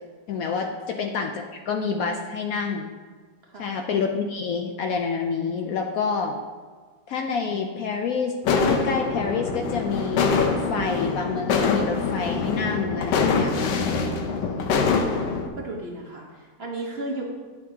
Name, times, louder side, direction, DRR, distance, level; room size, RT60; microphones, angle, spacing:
voice 1, 0.3-2.9 3.6-6.3 7.1-13.8 14.8-15.0, left 5 dB, 70° left, 3 dB, 0.9 m, -28 dB
Chinese Fireworks - New Year Celebration, 8.4-15.5, left 4 dB, 85° left, 1.4 m, -24 dB
voice 2, 13.4-17.2, right 2 dB, 45° right, -1 dB, 0.9 m, -37 dB
10.0 x 6.4 x 2.8 m, 1.5 s
omnidirectional pair, 1.8 m